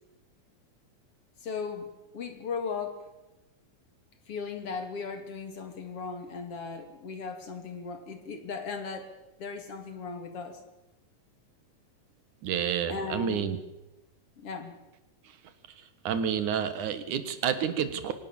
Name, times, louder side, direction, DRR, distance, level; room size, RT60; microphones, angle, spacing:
voice 1, 1.4-3.0 4.3-9.1 9.4-10.6 12.9-13.5 14.4-14.8, left 5 dB, 50° left, 6 dB, 3.1 m, -37 dB
voice 2, 12.4-13.6 16.0-18.1, right 8 dB, 85° right, 11 dB, 3.0 m, -29 dB
24.5 x 18.5 x 7.2 m, 0.99 s
omnidirectional pair, 3.4 m